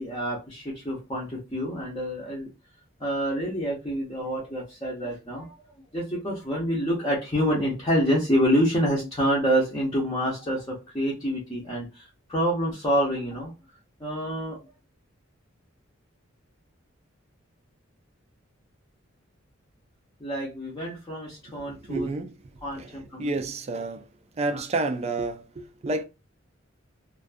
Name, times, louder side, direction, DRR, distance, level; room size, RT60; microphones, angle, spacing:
voice 1, 0.0-2.5 3.0-5.5 5.9-13.5 14.0-14.6 20.2-22.1 22.6-23.3 24.5-24.6, equal, 20° left, 0.6 m, -27 dB
voice 2, 21.6-24.1 24.3-26.0, right 2 dB, 30° right, 0.3 m, -30 dB
2.5 x 2.3 x 2.4 m
head